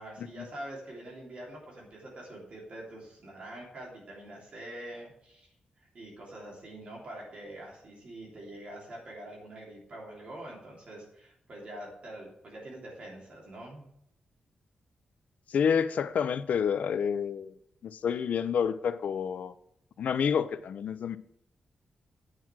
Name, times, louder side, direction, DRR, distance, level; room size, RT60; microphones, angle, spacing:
voice 1, 0.0-5.5 5.8-13.9, right 1 dB, 45° right, 3.1 m, -45 dB
voice 2, 15.5-17.6 17.8-19.5 20.0-21.2, left 7 dB, 65° left, 0.6 m, -29 dB
9.3 x 6.0 x 6.2 m
wide cardioid pair, 160°, 3 cm